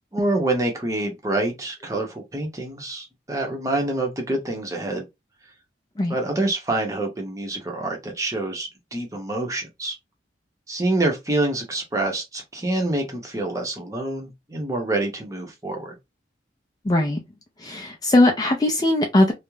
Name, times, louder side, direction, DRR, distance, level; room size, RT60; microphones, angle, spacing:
voice 1, 0.1-5.1 6.1-10.0 10.7-15.9, right 2 dB, 20° right, 0.7 m, -26 dB
voice 2, 16.9-17.2 17.6-19.3, left 1 dB, 20° left, 0.3 m, -19 dB
2.3 x 2.0 x 3.0 m
head